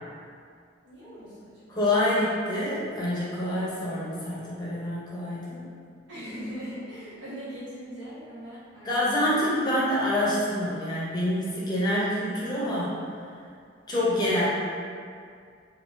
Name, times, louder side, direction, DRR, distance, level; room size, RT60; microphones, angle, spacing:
voice 1, 0.8-1.9 6.1-9.3, equal, 75° right, -13 dB, 1.3 m, -40 dB
voice 2, 1.7-5.7 8.8-13.0 13.9-14.5, left 1 dB, 20° left, -7 dB, 0.7 m, -26 dB
3.5 x 2.8 x 2.5 m, 2.2 s
head